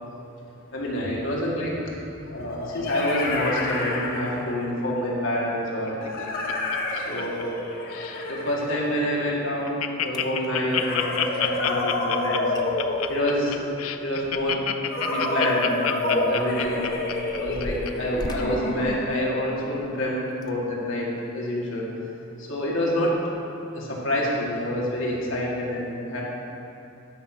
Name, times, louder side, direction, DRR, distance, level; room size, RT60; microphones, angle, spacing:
voice 1, 0.7-1.9 2.2-6.3 6.9-7.6 8.2-12.5 13.1-13.6 14.0-14.6 15.1-16.9 17.3-21.1 21.3-21.9 22.4-23.2 23.7-26.2, equal, 65° left, -5 dB, 2.0 m, -27 dB
sound 1, 0.9-1.0 2.4-4.8 6.0-9.5 10.7-13.7 14.9-19.2, left 2 dB, 45° left, 1.1 m, -29 dB
Laughter, 5.9-7.6 7.9-8.3 8.7-8.8 9.1-9.2 9.5-17.9 18.4-18.5, left 10 dB, 90° left, 0.5 m, -28 dB
sound 2, 9.6-9.7 10.1-10.5 12.2-12.3 12.5-12.6 13.0-14.8 15.1-15.3 16.0-19.7 20.3-20.5 21.1-21.3, left 1 dB, 20° left, 0.4 m, -39 dB
11.0 x 5.1 x 6.1 m, 2.8 s
head